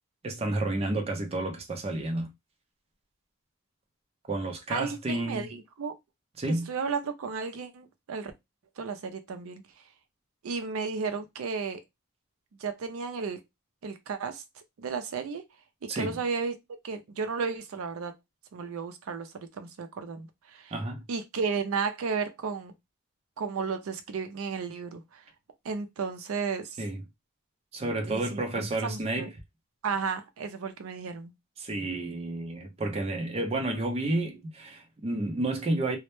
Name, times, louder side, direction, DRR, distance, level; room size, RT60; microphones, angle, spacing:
voice 1, 0.2-2.3 4.3-5.5 6.4-6.7 15.9-16.2 20.7-21.0 26.8-27.0 27.7-29.3 31.6-36.0, right 2 dB, 30° right, 0.4 m, -31 dB
voice 2, 4.7-5.9 6.7-8.3 8.8-9.6 10.4-11.8 12.6-13.4 13.8-14.4 14.8-15.4 15.8-16.6 16.8-18.1 18.5-20.7 21.1-22.7 23.4-25.2 25.6-26.7 28.1-29.3 29.8-31.3, right 5 dB, 85° right, 0.4 m, -33 dB
2.0 x 2.0 x 3.0 m
head